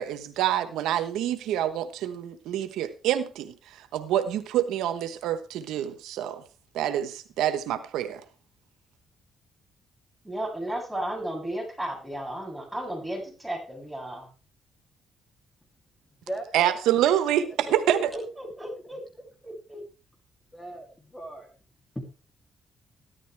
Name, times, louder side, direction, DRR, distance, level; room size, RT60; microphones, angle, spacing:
voice 1, 0.0-3.5 3.9-6.4 6.7-8.2 16.5-18.1, right 11 dB, 90° right, 10 dB, 1.1 m, -26 dB
voice 2, 10.2-14.3 17.9-19.8, right 1 dB, 5° right, -1 dB, 8.0 m, -34 dB
voice 3, 16.3-16.8 17.2-17.5 18.9-19.2 20.5-21.5 21.9-22.0, right 1 dB, 10° left, 3 dB, 2.8 m, -39 dB
14.5 x 12.5 x 3.4 m, 0.33 s
cardioid pair, 90°, 0 cm